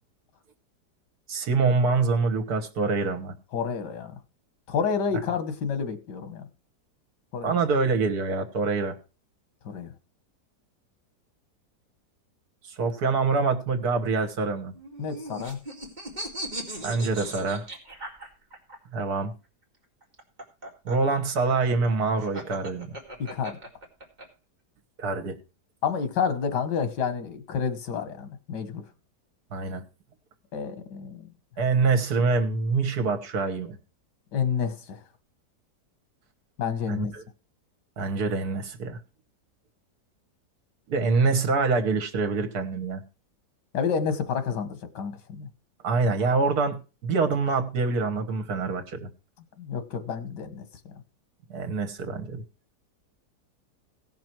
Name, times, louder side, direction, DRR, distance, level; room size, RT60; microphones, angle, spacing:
voice 1, 1.3-3.3 7.4-9.0 12.7-14.7 16.8-17.7 18.9-19.3 20.9-23.0 25.0-25.4 29.5-29.8 31.6-33.8 36.9-37.2 38.0-39.0 40.9-43.0 45.8-49.1 51.5-52.4, right 4 dB, 65° right, 1.8 m, -25 dB
voice 2, 3.5-4.1 4.7-6.4 7.3-7.6 9.7-9.9 15.0-15.6 23.2-23.6 25.8-28.8 30.5-31.3 34.3-35.0 36.6-37.1 43.7-45.5 49.6-50.6, left 6 dB, 85° left, 1.9 m, -29 dB
sound 1, 14.7-18.8 20.0-24.3, right 1 dB, 25° right, 2.4 m, -38 dB
17.0 x 6.0 x 4.5 m
omnidirectional pair, 1.8 m